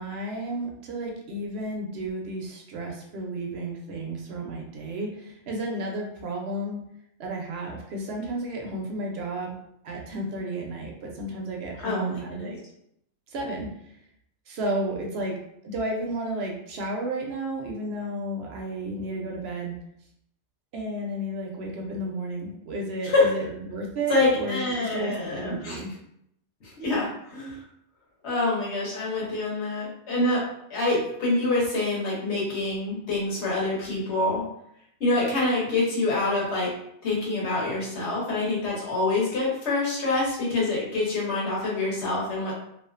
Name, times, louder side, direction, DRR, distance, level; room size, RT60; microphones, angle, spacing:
voice 1, 0.0-6.8 7.2-9.5 9.8-12.6 13.3-13.7 14.5-15.3 15.6-19.7 20.7-25.9, right 1 dB, 70° right, 0 dB, 0.8 m, -32 dB
voice 2, 11.8-12.5 23.0-23.3 24.1-25.8 26.6-27.6 28.2-34.4 35.0-36.7 37.0-42.5, left 2 dB, 70° left, -5 dB, 1.1 m, -26 dB
2.4 x 2.3 x 2.4 m, 0.75 s
omnidirectional pair, 1.2 m